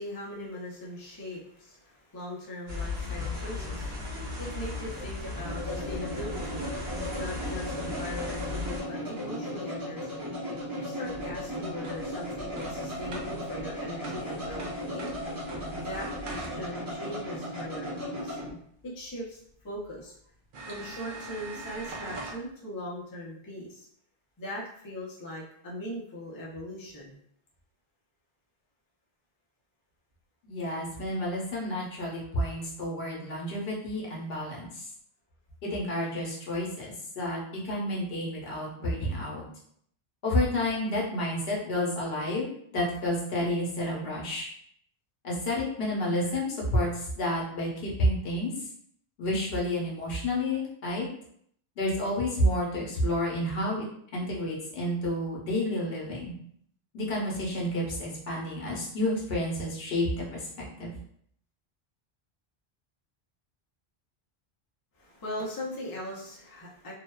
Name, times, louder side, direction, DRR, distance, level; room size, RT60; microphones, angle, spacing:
voice 1, 0.0-10.3 10.7-15.1 15.8-18.4 18.8-20.2 20.6-23.9 24.4-27.1 65.0-66.9, left 1 dB, 25° left, -5 dB, 0.5 m, -40 dB
sound 1, 2.7-8.8, left 3 dB, 80° right, 1.3 m, -36 dB
sound 2, 3.2-18.5, equal, 25° right, 0.6 m, -36 dB
sound 3, 11.0-16.9 19.1-19.2 19.8-19.9 20.5-22.4, right 2 dB, 60° right, 0.7 m, -43 dB
voice 2, 30.4-34.8 35.6-37.4 37.6-39.4 40.2-42.5 42.7-44.5 45.2-48.5 49.2-51.1 51.8-53.9 54.1-56.3 56.9-60.9, left 1 dB, 75° left, -3 dB, 0.9 m, -30 dB
2.7 x 2.1 x 2.2 m, 0.67 s
omnidirectional pair, 1.0 m